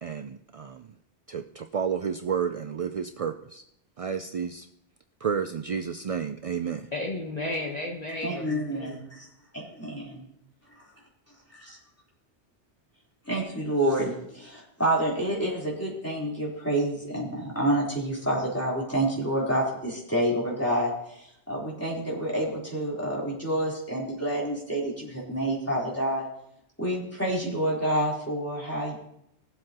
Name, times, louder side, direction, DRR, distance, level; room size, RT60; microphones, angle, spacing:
voice 1, 0.0-0.9 1.3-3.6 4.0-4.7 5.2-6.9, right 7 dB, 60° right, 7 dB, 0.3 m, -31 dB
voice 2, 6.9-9.1, left 2 dB, 40° left, -1 dB, 1.2 m, -33 dB
voice 3, 8.2-9.3 9.5-10.2 11.6-11.8 13.3-26.3 26.8-29.0, right 1 dB, 10° left, -5 dB, 3.5 m, -28 dB
20.0 x 7.7 x 2.9 m, 0.76 s
omnidirectional pair, 1.1 m